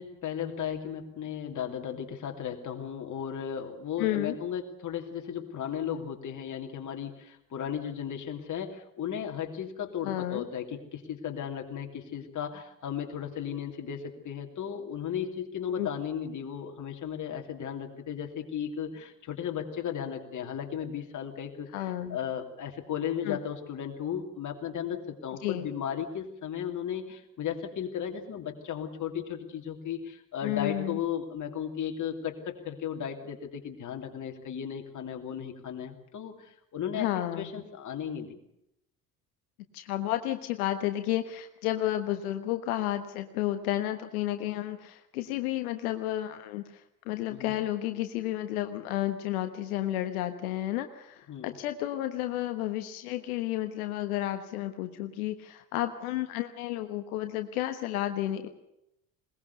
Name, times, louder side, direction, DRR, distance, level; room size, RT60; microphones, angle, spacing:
voice 1, 0.0-38.4 47.3-47.5 51.3-51.6, left 8 dB, 40° left, 3 dB, 2.9 m, -35 dB
voice 2, 4.0-4.4 10.0-10.4 15.8-15.9 21.7-22.2 23.2-23.4 25.4-25.7 30.4-31.0 36.9-37.5 39.7-58.5, left 13 dB, 65° left, 8 dB, 1.3 m, -32 dB
21.0 x 20.0 x 6.9 m, 0.81 s
figure-of-eight pair, 60°, 47 cm